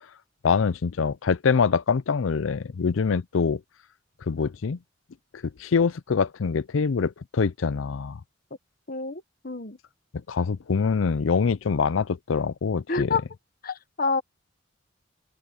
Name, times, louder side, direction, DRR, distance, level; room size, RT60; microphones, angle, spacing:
voice 1, 0.4-3.6 4.3-4.8 5.3-8.2 10.3-13.1, left 5 dB, 85° left, 0.5 m, -24 dB
voice 2, 8.9-9.8 12.9-13.2 13.6-14.2, left 4 dB, 50° left, 1.3 m, -28 dB
head